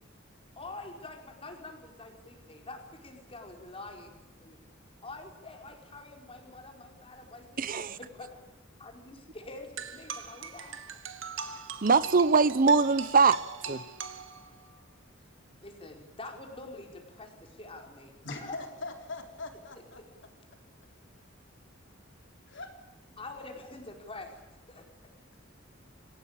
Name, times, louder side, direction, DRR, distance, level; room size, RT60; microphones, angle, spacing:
voice 1, 0.6-4.6 5.0-8.4 8.8-10.8 12.7-12.8 15.6-18.6 23.2-24.8, left 2 dB, 30° left, 3 dB, 4.7 m, -46 dB
voice 2, 7.6-8.0 11.8-13.4 13.7-13.8, right 4 dB, 45° right, 17 dB, 0.7 m, -22 dB
sound 1, 9.8-14.8, right 6 dB, 75° right, 1.8 m, -41 dB
voice 3, 18.2-20.0 22.5-22.7, left 3 dB, 65° left, 4 dB, 4.0 m, -41 dB
26.0 x 17.5 x 8.8 m, 1.1 s
head